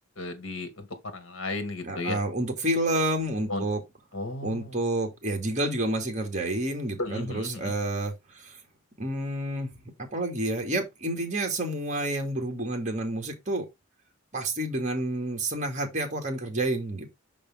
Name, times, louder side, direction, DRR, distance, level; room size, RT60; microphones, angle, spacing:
voice 1, 0.2-2.2 3.5-3.6 4.1-4.8 7.0-7.7, left 2 dB, 70° left, 1.9 m, -34 dB
voice 2, 1.8-3.8 4.4-8.6 9.0-9.7 10.0-13.7 14.3-17.1, right 1 dB, 35° right, 2.1 m, -29 dB
6.1 x 5.3 x 3.6 m
head